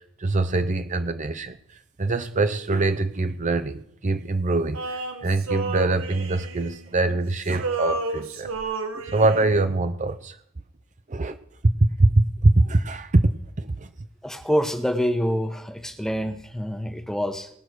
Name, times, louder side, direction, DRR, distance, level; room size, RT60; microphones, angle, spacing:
voice 1, 0.0-8.5 8.9-10.4 11.1-11.4 11.6-13.9, right 2 dB, 35° right, 10 dB, 0.6 m, -23 dB
Male singing, 4.7-7.2 7.5-9.6, right 3 dB, 80° right, 1.5 m, -31 dB
voice 2, 14.2-17.5, equal, ahead, 8 dB, 1.0 m, -26 dB
19.0 x 6.6 x 6.1 m, 0.70 s
head